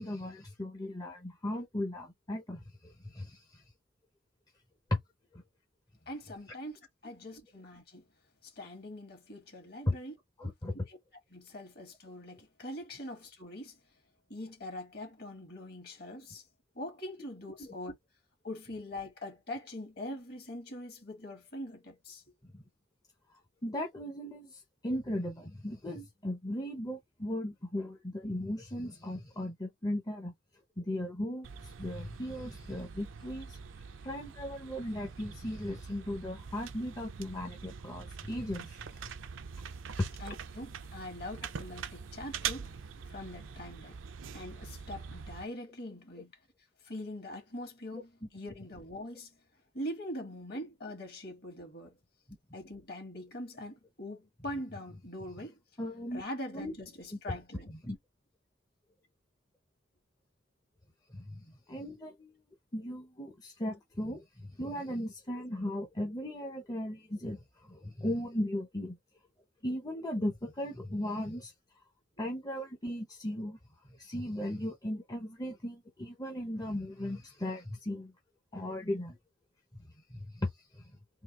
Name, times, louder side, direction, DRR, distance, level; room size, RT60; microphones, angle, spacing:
voice 1, 0.0-3.6 4.9-5.0 5.3-5.4 9.9-10.0 10.4-10.7 17.6-17.7 22.5-22.6 23.6-30.3 30.8-33.6 34.0-39.0 52.3-52.4 55.8-56.2 56.5-56.7 57.7-58.0 61.1-62.4 62.7-69.0 69.6-71.5 72.2-73.6 73.9-78.1 78.5-79.2 79.8-80.9, left 1 dB, 20° left, 0.6 m, -37 dB
voice 2, 6.1-8.1 8.4-10.2 10.9-11.0 11.3-13.8 14.3-16.4 16.8-17.9 18.4-22.2 40.2-42.7 43.1-44.0 44.3-46.3 46.8-49.3 49.7-52.0 52.5-55.6 56.1-57.8, left 1 dB, 55° left, 1.8 m, -43 dB
sound 1, 31.4-45.4, right 7 dB, 80° right, 0.5 m, -44 dB
3.8 x 2.8 x 3.0 m
head